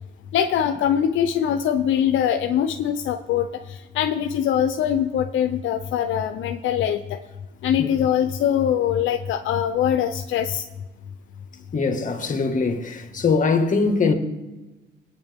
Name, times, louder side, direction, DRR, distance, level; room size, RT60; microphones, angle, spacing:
voice 1, 0.3-7.2 7.6-10.6, left 9 dB, 80° left, 0.7 m, -22 dB
voice 2, 11.7-14.1, left 4 dB, 40° left, 2.0 m, -22 dB
20.5 x 9.0 x 3.6 m
cardioid pair, 90°, 20 cm